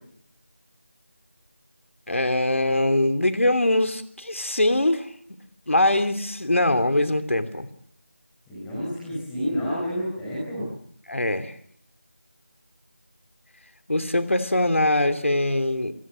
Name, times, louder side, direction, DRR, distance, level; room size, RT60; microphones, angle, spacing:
voice 1, 2.1-5.1 5.7-7.7 11.1-11.5 13.9-15.9, left 1 dB, 85° left, 10 dB, 3.1 m, -22 dB
voice 2, 8.5-10.7, equal, 5° left, -7 dB, 5.7 m, -29 dB
28.0 x 21.0 x 7.7 m, 0.63 s
figure-of-eight pair, 175°, 7 cm